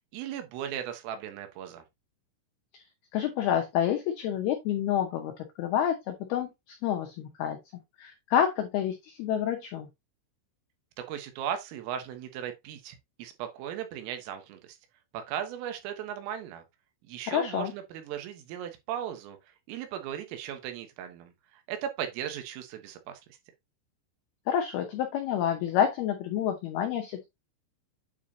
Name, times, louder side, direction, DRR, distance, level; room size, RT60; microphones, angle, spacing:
voice 1, 0.1-1.8 11.0-14.8 15.1-16.6 17.1-19.4 19.7-23.2, right 10 dB, 85° right, 3.9 m, -37 dB
voice 2, 3.1-5.3 5.6-7.6 8.0-9.9 17.3-17.7 24.5-27.3, left 9 dB, 85° left, 2.2 m, -28 dB
9.1 x 5.0 x 2.8 m
omnidirectional pair, 5.8 m